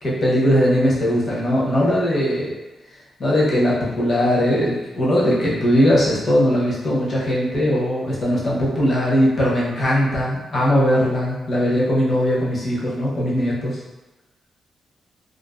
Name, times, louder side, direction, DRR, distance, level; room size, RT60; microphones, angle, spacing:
voice 1, 0.0-2.5 3.2-13.8, equal, 40° left, -6 dB, 0.7 m, -19 dB
2.4 x 2.3 x 2.3 m, 1.1 s
wide cardioid pair, 145°, 0 cm